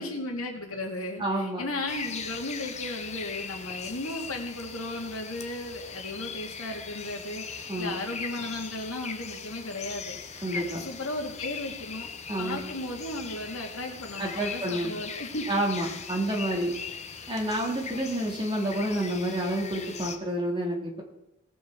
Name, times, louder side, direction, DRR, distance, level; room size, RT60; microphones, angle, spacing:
voice 1, 0.0-12.1 12.4-15.4 15.8-16.0 17.9-18.1, left 2 dB, 75° left, 1 dB, 2.2 m, -35 dB
voice 2, 1.2-1.6 7.7-7.9 10.4-10.8 12.3-12.6 14.2-14.9 15.5-16.8 17.3-21.0, right 1 dB, 25° right, -1 dB, 2.4 m, -29 dB
sound 1, 1.9-20.2, left 6 dB, 30° left, 0.9 m, -40 dB
19.0 x 7.2 x 3.8 m, 0.87 s
head